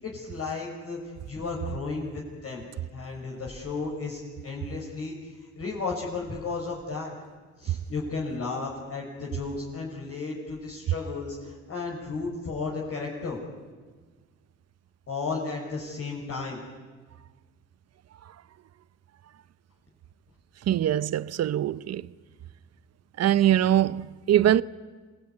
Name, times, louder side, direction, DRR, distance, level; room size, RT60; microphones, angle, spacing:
voice 1, 0.0-2.6 2.9-7.1 7.6-13.4 15.1-16.6, left 4 dB, 50° left, 6.6 m, -34 dB
voice 2, 20.7-22.0 23.2-24.6, right 11 dB, 55° right, 0.8 m, -22 dB
27.0 x 19.5 x 9.7 m
cardioid pair, 90°, 30 cm